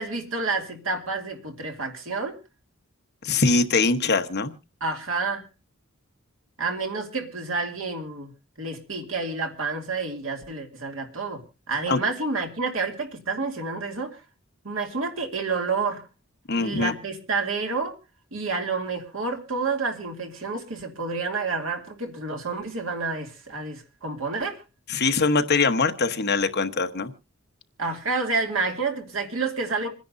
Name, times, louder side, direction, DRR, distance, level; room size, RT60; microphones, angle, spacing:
voice 1, 0.0-2.4 4.8-5.5 6.6-8.3 8.6-14.2 14.6-16.0 16.6-17.9 18.3-24.6 27.8-29.9, right 4 dB, 70° right, 3 dB, 2.5 m, -29 dB
voice 2, 3.2-4.5 11.9-12.0 16.5-16.9 24.9-27.1, left 3 dB, 55° left, 8 dB, 1.1 m, -22 dB
27.0 x 10.5 x 2.6 m, 0.30 s
head